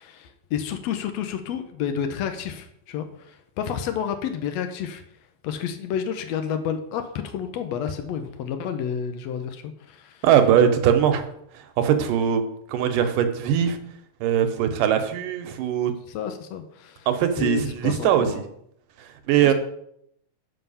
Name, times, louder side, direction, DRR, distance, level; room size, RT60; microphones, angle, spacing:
voice 1, 0.0-5.0 5.4-10.2 16.1-17.1 17.4-18.4 19.4-19.5, left 8 dB, 90° left, 7 dB, 1.5 m, -30 dB
voice 2, 10.2-11.3 11.5-12.4 12.7-13.8 14.2-15.9 17.1-18.3 19.0-19.5, right 9 dB, 75° right, 8 dB, 2.4 m, -21 dB
9.6 x 5.8 x 5.5 m, 0.73 s
omnidirectional pair, 4.0 m